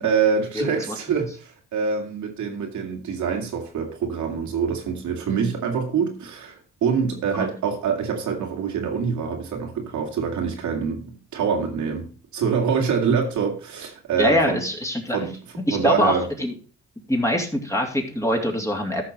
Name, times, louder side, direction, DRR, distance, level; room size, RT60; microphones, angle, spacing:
voice 1, 0.0-14.6 15.1-15.3 15.7-16.3, right 6 dB, 75° right, 2.5 m, -25 dB
voice 2, 0.5-1.0 7.3-7.5 14.2-15.2 15.7-16.5 17.1-19.0, equal, 10° left, 3.0 m, -23 dB
13.5 x 5.9 x 4.2 m
cardioid pair, 90°, 30 cm